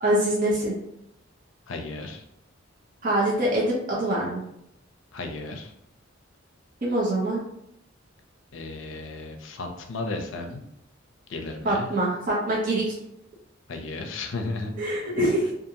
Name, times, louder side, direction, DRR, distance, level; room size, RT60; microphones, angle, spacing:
voice 1, 0.0-0.8 3.0-4.4 6.8-7.4 11.6-13.0 14.8-15.5, right 1 dB, 45° right, -5 dB, 0.6 m, -24 dB
voice 2, 1.7-2.2 5.1-5.7 8.5-10.6 11.3-11.9 13.7-14.7, left 3 dB, 70° left, 4 dB, 0.5 m, -34 dB
2.6 x 2.5 x 2.7 m, 0.77 s
head